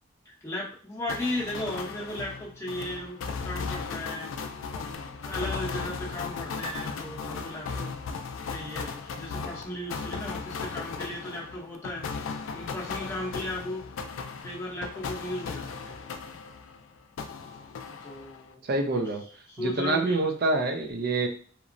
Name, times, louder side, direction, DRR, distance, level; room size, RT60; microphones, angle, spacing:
voice 1, 0.3-4.3 4.7-8.0 8.4-13.8 14.4-16.0 17.8-19.1 19.5-20.2, left 1 dB, 15° left, -5 dB, 0.7 m, -36 dB
sound 1, 1.1-16.8 17.2-18.5, left 5 dB, 75° left, 0.3 m, -36 dB
voice 2, 18.7-19.2 19.6-21.3, right 2 dB, 50° right, 3 dB, 0.4 m, -26 dB
2.9 x 2.1 x 2.5 m, 0.44 s
head